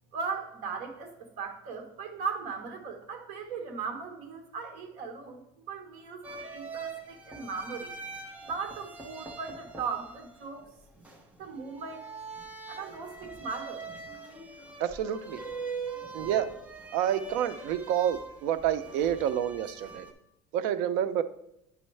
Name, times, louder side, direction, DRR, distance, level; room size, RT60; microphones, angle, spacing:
voice 1, 0.1-7.9 8.4-10.6 11.4-12.1 12.7-13.8, right 5 dB, 55° right, 4 dB, 1.2 m, -38 dB
sound 1, 6.2-20.1, right 4 dB, 10° right, 0.7 m, -43 dB
voice 2, 14.8-15.4 16.1-16.5 16.9-20.1 20.5-21.2, right 10 dB, 75° right, 12 dB, 0.5 m, -28 dB
9.0 x 6.2 x 3.2 m, 0.83 s
cardioid pair, 165°, 14 cm